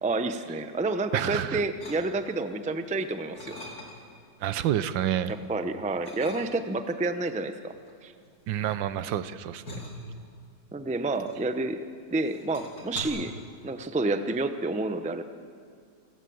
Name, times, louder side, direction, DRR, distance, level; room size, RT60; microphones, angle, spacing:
voice 1, 0.0-3.6 5.5-7.7 8.0-8.1 10.7-11.8 12.1-13.3 13.6-15.2, right 2 dB, 10° right, 9 dB, 0.4 m, -29 dB
voice 2, 1.1-1.6 4.4-5.4 8.5-9.7, right 11 dB, 85° right, 14 dB, 1.5 m, -28 dB
sound 1, 1.8-2.5 2.9-4.2 4.6-5.4 6.0-6.9 7.7-11.8 12.1-13.0, left 2 dB, 55° left, 4.0 m, -44 dB
29.0 x 16.0 x 7.9 m, 2.3 s
omnidirectional pair, 2.0 m